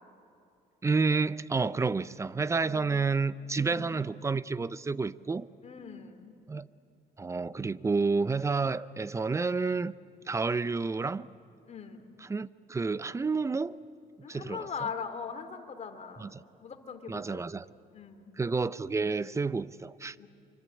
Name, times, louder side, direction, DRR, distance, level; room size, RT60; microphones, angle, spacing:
voice 1, 0.8-5.5 6.5-6.7 7.2-9.9 10.3-11.3 12.2-13.8 14.3-14.7 16.2-16.4 17.1-17.6 18.4-20.2, right 4 dB, 15° right, 0.5 m, -30 dB
voice 2, 2.6-3.0 3.5-4.0 5.6-6.3 11.7-12.1 14.2-16.3 16.6-17.5 17.9-18.3 20.2-20.3, left 6 dB, 40° left, 2.6 m, -41 dB
25.5 x 24.0 x 8.7 m
cardioid pair, 110°, 17 cm